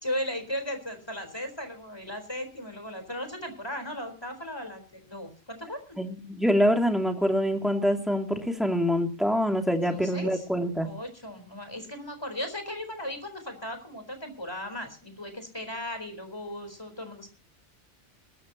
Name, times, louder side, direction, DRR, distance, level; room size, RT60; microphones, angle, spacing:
voice 1, 0.0-6.0 9.9-10.4 10.8-17.3, left 1 dB, 20° left, 7 dB, 4.3 m, -36 dB
voice 2, 6.0-10.9, equal, ahead, 2 dB, 2.6 m, -25 dB
21.5 x 13.5 x 2.9 m, 0.36 s
omnidirectional pair, 1.3 m